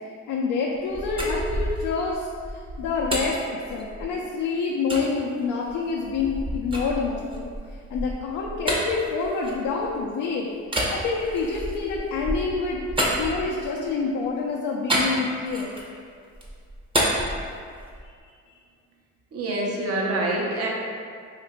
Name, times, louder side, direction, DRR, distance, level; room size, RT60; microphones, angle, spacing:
voice 1, 0.3-2.3 2.8-7.5 7.9-10.5 10.9-12.8 13.2-15.8, left 4 dB, 80° left, -3 dB, 0.5 m, -27 dB
sound 1, 0.7-4.3 4.9-5.1 5.6-10.1 10.6-13.9 14.9-16.0 16.3-18.1, right 1 dB, 15° right, 0.7 m, -30 dB
voice 2, 19.3-20.7, right 2 dB, 50° right, -2 dB, 0.8 m, -26 dB
2.8 x 2.5 x 4.3 m, 2.1 s
cardioid pair, 90°, 30 cm